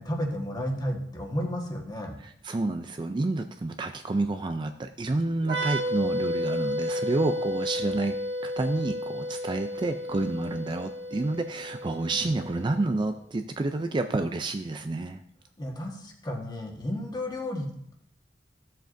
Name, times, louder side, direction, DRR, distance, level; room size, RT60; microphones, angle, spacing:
voice 1, 0.0-2.2 15.6-17.9, equal, 25° left, 0 dB, 1.4 m, -32 dB
voice 2, 2.2-8.2 8.4-15.2, right 2 dB, 25° right, 7 dB, 0.4 m, -29 dB
sound 1, 5.4-12.9, equal, 70° right, 1.5 m, -32 dB
13.5 x 7.6 x 2.6 m, 0.72 s
head